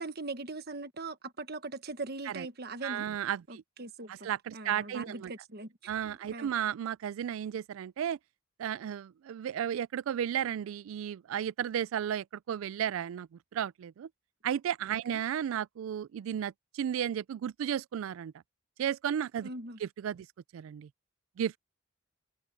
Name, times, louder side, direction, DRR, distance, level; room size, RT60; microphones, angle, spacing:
voice 1, 0.0-3.2 3.5-4.3 4.5-5.7 6.0-6.5 15.1-15.2 19.4-19.8, right 3 dB, 50° right, 1.3 m, -41 dB
voice 2, 2.8-3.6 4.1-5.3 5.9-8.2 8.6-14.1 14.4-18.3 18.8-19.5 19.8-20.3 20.5-20.9 21.4-21.6, right 9 dB, 80° right, 0.3 m, -34 dB
head